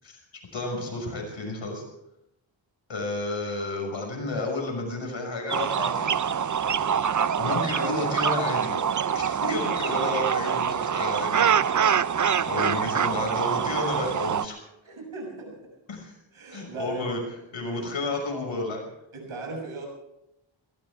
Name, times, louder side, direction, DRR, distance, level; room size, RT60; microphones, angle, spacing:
voice 1, 0.5-1.8 2.9-6.1 7.1-8.8 9.1-11.6 12.4-14.6 15.9-16.1 16.5-17.2 17.5-18.8, left 2 dB, 70° left, 2 dB, 6.1 m, -31 dB
sound 1, 5.5-14.4, right 7 dB, 40° right, 0.6 m, -25 dB
voice 2, 14.8-15.6 16.3-17.2 17.6-17.9 19.1-19.9, right 2 dB, 85° right, 1 dB, 7.4 m, -38 dB
21.0 x 18.5 x 3.6 m, 0.85 s
wide cardioid pair, 80°, 47 cm